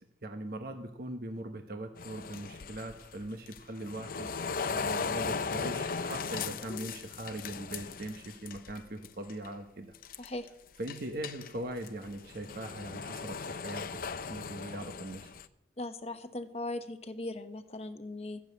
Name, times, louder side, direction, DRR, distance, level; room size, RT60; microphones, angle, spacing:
voice 1, 0.2-4.3 4.7-9.9 10.8-13.9 14.3-15.4, right 1 dB, 60° right, 5 dB, 1.1 m, -40 dB
sound 1, 2.0-8.8 9.0-9.5 9.9-10.5 10.9-15.5, left 5 dB, 55° left, 0.6 m, -38 dB
voice 2, 15.8-18.4, left 2 dB, 35° left, 8 dB, 0.9 m, -39 dB
14.5 x 7.2 x 8.4 m, 0.84 s
head